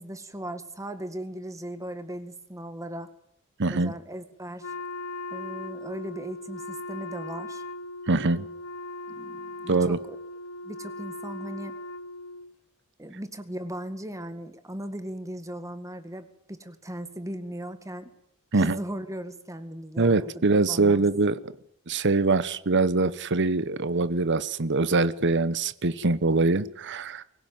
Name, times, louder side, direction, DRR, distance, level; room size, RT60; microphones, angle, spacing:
voice 1, 0.0-3.1 3.7-4.7 5.3-7.6 9.1-10.2 10.6-11.8 13.0-18.1 18.5-21.0, right 1 dB, 15° right, 1.9 m, -38 dB
voice 2, 3.6-3.9 8.1-8.5 9.7-10.0 18.5-18.8 20.0-21.5 21.9-27.2, right 3 dB, 55° right, 1.0 m, -23 dB
Wind instrument woodwind instrument, 4.6-12.5, left 2 dB, 75° left, 1.4 m, -38 dB
24.5 x 16.5 x 9.3 m
head